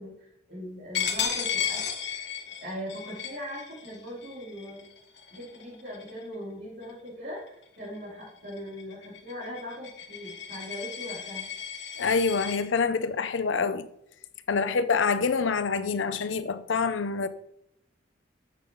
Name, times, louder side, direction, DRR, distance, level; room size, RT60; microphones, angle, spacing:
voice 1, 0.0-1.8 2.1-2.2 2.6-4.9 5.3-11.5 14.5-14.8, equal, 60° right, 3.7 m, -40 dB
Coin (dropping), 0.9-6.3 6.8-7.1 7.5-12.6, left 7 dB, 65° left, 1.6 m, -35 dB
voice 2, 12.0-13.9 14.5-17.3, left 5 dB, 85° left, 0.6 m, -26 dB
10.0 x 6.8 x 3.9 m
head